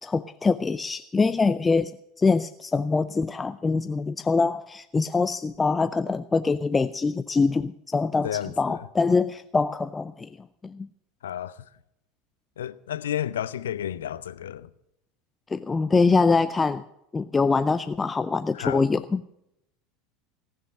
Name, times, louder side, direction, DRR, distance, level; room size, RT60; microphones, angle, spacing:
voice 1, 0.0-10.3 10.6-10.9 15.5-16.8 17.1-19.2, left 4 dB, 15° left, 0.4 m, -24 dB
voice 2, 8.2-8.8 11.2-11.5 12.6-14.7 18.5-18.9, left 10 dB, 70° left, 0.5 m, -31 dB
18.0 x 6.6 x 8.5 m
figure-of-eight pair, 75°, 0 cm